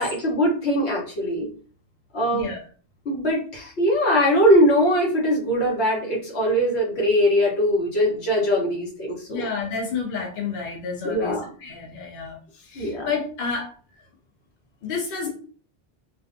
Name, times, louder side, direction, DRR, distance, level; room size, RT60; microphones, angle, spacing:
voice 1, 0.0-1.5 2.1-2.5 3.0-9.5 11.0-11.4 12.7-13.1, equal, 85° left, -2 dB, 1.1 m, -21 dB
voice 2, 9.3-13.7 14.8-15.3, left 5 dB, 70° left, -1 dB, 0.8 m, -30 dB
2.4 x 2.2 x 2.4 m, 0.42 s
omnidirectional pair, 1.0 m